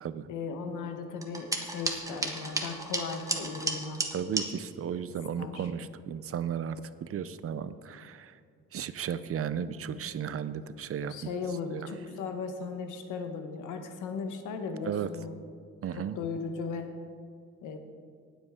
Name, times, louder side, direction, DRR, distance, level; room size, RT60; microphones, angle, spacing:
voice 1, 0.3-4.0 5.4-5.7 11.1-15.4 15.9-16.9 17.6-17.8, left 5 dB, 85° left, 6 dB, 1.2 m, -37 dB
sound 1, 1.2-4.5, right 2 dB, 10° right, 1.4 m, -33 dB
voice 2, 4.1-8.4 8.7-11.3 11.7-11.9 14.8-15.1 15.8-16.2, right 8 dB, 50° right, 14 dB, 0.6 m, -35 dB
19.0 x 7.9 x 3.6 m, 2.2 s
cardioid pair, 90°, 30 cm